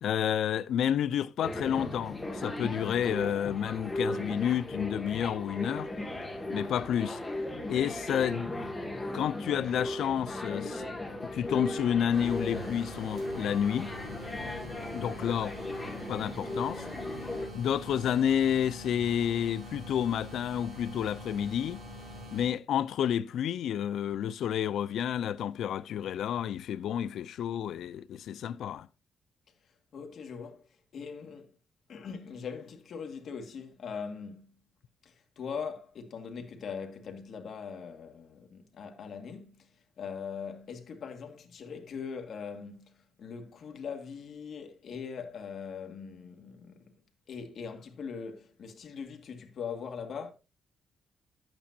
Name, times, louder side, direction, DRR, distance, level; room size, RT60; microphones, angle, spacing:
voice 1, 0.0-5.9 6.5-7.2 7.7-8.6 9.1-10.9 11.3-13.9 14.9-15.6 16.1-16.8 17.5-21.8 22.3-28.9, left 9 dB, 75° left, 0.5 m, -30 dB
sound 1, 1.4-17.5, left 1 dB, 10° left, 1.9 m, -37 dB
sound 2, 12.1-22.5, left 1 dB, 45° right, 5.7 m, -45 dB
voice 2, 29.9-30.6 30.9-31.5 31.9-34.6 35.0-39.7 40.0-46.9 47.3-50.3, left 6 dB, 55° left, 2.0 m, -41 dB
11.0 x 8.9 x 2.7 m
cardioid pair, 155°, 0 cm